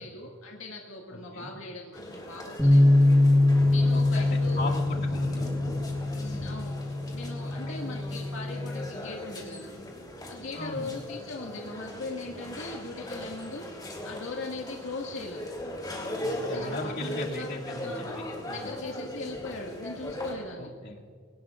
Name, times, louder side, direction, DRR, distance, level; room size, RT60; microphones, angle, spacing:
voice 1, 0.0-3.1 3.7-4.8 6.2-9.7 10.3-15.4 16.5-17.5 17.8-18.1 18.5-20.7, left 3 dB, 75° left, -1 dB, 1.9 m, -39 dB
voice 2, 1.1-1.5 3.9-5.5 7.4-7.8 10.6-10.9 16.2-18.7 20.6-21.0, left 2 dB, 55° left, -2 dB, 2.5 m, -37 dB
sound 1, 1.9-20.3, left 1 dB, 20° left, 3.2 m, -39 dB
sound 2, 2.6-8.8, left 2 dB, 5° left, 1.6 m, -24 dB
23.5 x 18.5 x 2.5 m, 2.1 s
head